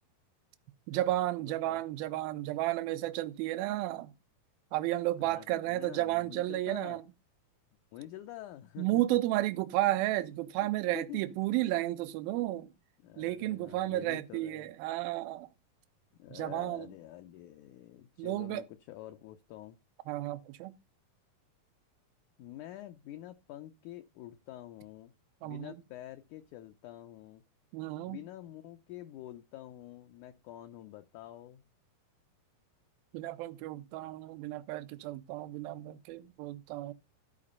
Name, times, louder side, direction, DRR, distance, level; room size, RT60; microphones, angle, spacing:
voice 1, 0.9-4.1 4.7-7.0 8.8-12.7 13.2-15.5 16.3-16.9 18.2-18.6 20.1-20.7 25.4-25.7 27.7-28.2 33.1-36.9, right 16 dB, 85° right, 2.6 m, -32 dB
voice 2, 1.4-1.8 5.2-7.0 7.9-9.0 10.6-11.2 13.0-14.7 16.2-19.8 22.4-25.1 25.4-27.4 28.1-31.6, left 13 dB, 75° left, 1.9 m, -47 dB
13.5 x 4.9 x 5.4 m
omnidirectional pair, 4.2 m